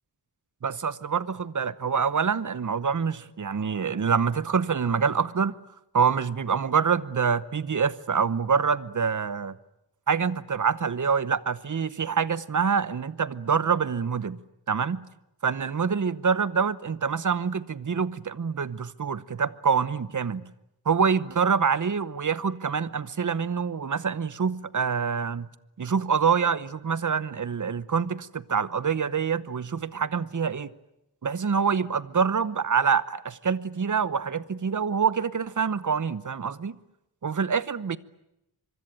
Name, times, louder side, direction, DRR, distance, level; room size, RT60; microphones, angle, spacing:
voice 1, 0.6-5.6 5.9-9.6 10.1-14.4 14.7-15.0 15.4-20.4 20.8-25.5 25.8-30.7 31.2-36.8 37.2-38.0, right 6 dB, 45° right, 0.9 m, -26 dB
25.5 x 23.5 x 9.0 m
wide cardioid pair, 135°, 41 cm